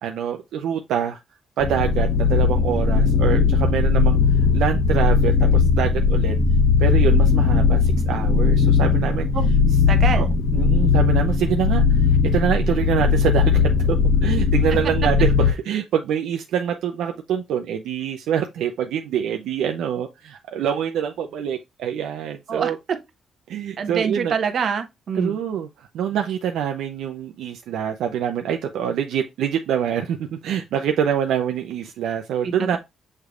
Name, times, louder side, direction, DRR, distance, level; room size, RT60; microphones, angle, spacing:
voice 1, 0.0-1.2 1.6-4.2 4.5-6.4 6.8-9.3 10.2-10.3 10.5-11.8 12.2-22.8 23.5-24.3 25.2-32.8, right 9 dB, 80° right, 0.5 m, -25 dB
sound 1, 1.6-15.5, left 5 dB, 65° left, 1.1 m, -18 dB
voice 2, 9.9-10.3 22.5-23.0 23.8-25.4 32.4-32.8, right 6 dB, 55° right, 0.9 m, -25 dB
6.5 x 3.3 x 2.4 m
cardioid pair, 90°, 0 cm